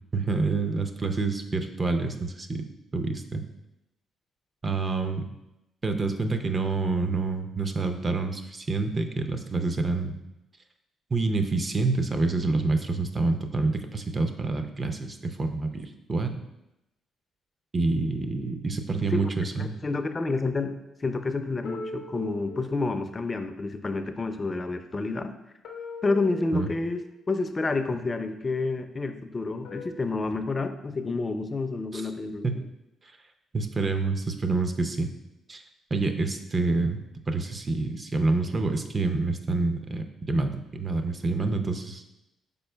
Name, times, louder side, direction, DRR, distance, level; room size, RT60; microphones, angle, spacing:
voice 1, 0.1-2.6 2.9-3.4 4.6-5.2 5.8-10.1 11.1-16.4 17.7-19.7 26.5-26.7 31.9-32.0 32.4-32.6 33.5-35.1 35.5-35.6 35.9-37.0 37.3-42.0, right 3 dB, 30° right, 6 dB, 0.4 m, -27 dB
voice 2, 19.6-25.3 26.0-32.6, left 3 dB, 30° left, 8 dB, 0.4 m, -29 dB
sound 1, 21.6-23.3 25.6-27.3 29.6-29.9, left 2 dB, 90° left, 0.6 m, -41 dB
5.2 x 4.3 x 2.2 m, 0.93 s
cardioid pair, 90°, 0 cm